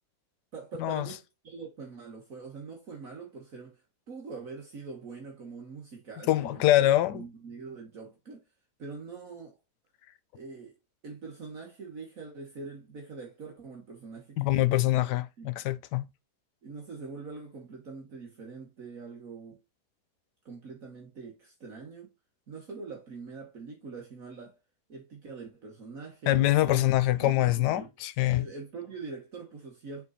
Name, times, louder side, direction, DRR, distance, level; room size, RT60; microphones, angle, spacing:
voice 1, 0.5-3.8 4.1-6.9 7.1-8.4 8.8-9.6 10.3-10.8 11.0-15.0 15.4-15.5 16.6-19.6 20.5-22.1 22.5-24.6 24.9-26.9 27.2-27.9 28.3-30.1, right 4 dB, 55° right, 1.8 m, -43 dB
voice 2, 6.3-7.2 14.4-16.1 26.3-28.5, left 15 dB, 85° left, 1.2 m, -24 dB
7.0 x 3.9 x 4.0 m
omnidirectional pair, 1.8 m